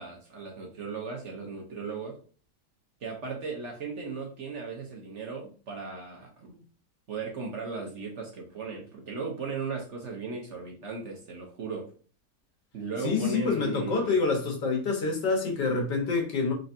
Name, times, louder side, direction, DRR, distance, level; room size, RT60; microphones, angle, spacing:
voice 1, 0.0-2.2 3.0-6.6 7.1-11.9 12.7-14.1, right 4 dB, 55° right, 0.9 m, -37 dB
voice 2, 13.0-16.5, left 4 dB, 85° left, 1.8 m, -27 dB
3.9 x 3.2 x 2.6 m
omnidirectional pair, 1.8 m